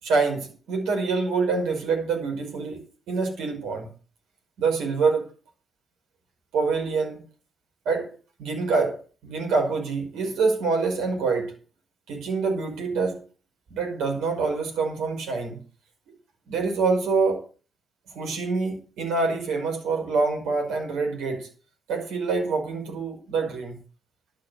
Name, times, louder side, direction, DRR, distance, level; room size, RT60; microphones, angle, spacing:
voice 1, 0.0-2.8 3.1-3.9 4.6-5.3 6.5-7.2 7.9-9.0 9.2-11.5 12.1-13.2 13.7-15.6 16.5-17.4 18.1-21.5 21.9-23.8, right 4 dB, 65° right, 5.4 m, -26 dB
12.0 x 10.5 x 6.5 m
figure-of-eight pair, 40°, 0 cm